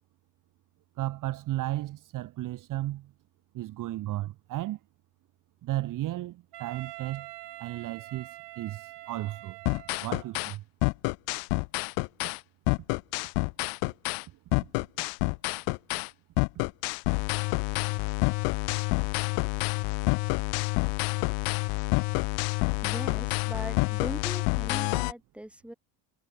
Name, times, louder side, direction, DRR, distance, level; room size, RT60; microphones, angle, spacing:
voice 1, 1.0-3.1 3.5-4.8 5.6-7.3 7.6-8.3 8.6-9.6 10.0-10.6 14.6-14.7, right 15 dB, 40° right, 1.1 m, -34 dB
Wind instrument woodwind instrument, 6.5-10.4, right 18 dB, 60° right, 6.4 m, -45 dB
sound 1, 9.7-10.5 10.8-12.4 12.7-14.2 14.5-16.1 16.4-25.1, left 40 dB or more, 75° left, 0.5 m, -28 dB
voice 2, 22.8-25.7, right 1 dB, ahead, 5.0 m, -40 dB
cardioid pair, 145°, 46 cm